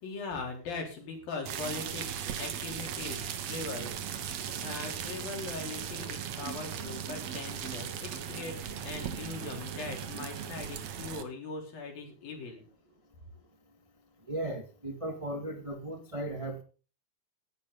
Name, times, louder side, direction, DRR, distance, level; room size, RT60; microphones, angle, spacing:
voice 1, 0.0-4.2 4.6-12.6, left 3 dB, 85° left, 1 dB, 5.6 m, -40 dB
sound 1, 1.5-11.2, right 8 dB, 60° right, 2.2 m, -38 dB
voice 2, 14.3-16.6, right 1 dB, 35° right, 4 dB, 0.5 m, -36 dB
16.5 x 11.5 x 4.0 m, 0.37 s
omnidirectional pair, 4.0 m